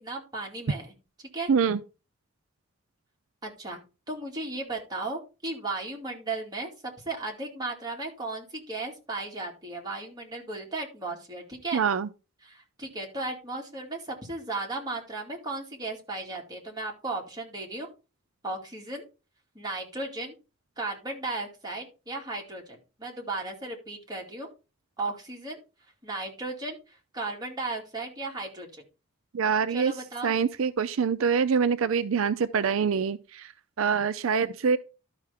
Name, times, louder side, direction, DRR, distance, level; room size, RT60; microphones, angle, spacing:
voice 1, 0.0-0.9 1.3-1.5 3.4-3.8 4.1-11.8 12.4-17.9 18.4-19.0 19.5-20.3 20.8-24.5 25.0-25.6 26.0-28.8 29.7-30.3, right 2 dB, 20° right, 2.2 m, -35 dB
voice 2, 1.5-1.8 11.7-12.1 29.3-29.9 30.2-33.5 33.8-34.8, right 6 dB, 80° right, 0.5 m, -25 dB
12.0 x 5.6 x 3.5 m
head